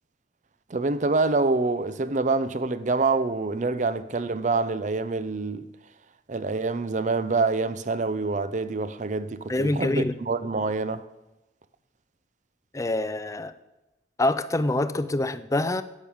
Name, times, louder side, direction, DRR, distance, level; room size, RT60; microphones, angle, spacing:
voice 1, 0.7-5.7 6.3-11.0, right 3 dB, 40° right, 0.6 m, -26 dB
voice 2, 9.5-10.1 12.7-13.5 14.2-15.8, left 2 dB, 15° left, 0.4 m, -25 dB
11.0 x 8.6 x 7.1 m
head